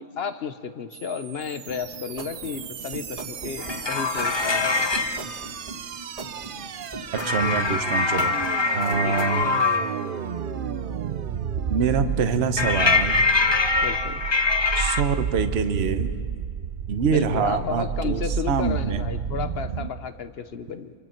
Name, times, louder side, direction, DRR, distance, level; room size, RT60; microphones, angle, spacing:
voice 1, 0.0-4.9 9.0-9.4 13.8-14.2 17.1-20.9, left 6 dB, 50° left, 11 dB, 0.9 m, -33 dB
sound 1, 0.9-19.9, right 8 dB, 70° right, 0.5 m, -32 dB
sound 2, 1.7-9.5, right 2 dB, 25° right, 2.1 m, -39 dB
sound 3, 3.6-5.2 7.1-9.9 12.6-15.0, left 3 dB, 30° left, 0.5 m, -23 dB
voice 2, 7.2-8.4 8.7-9.4 11.7-13.2 14.8-16.1 16.9-19.1, right 5 dB, 45° right, 9 dB, 1.1 m, -25 dB
26.0 x 24.0 x 4.5 m, 2.1 s
omnidirectional pair, 1.6 m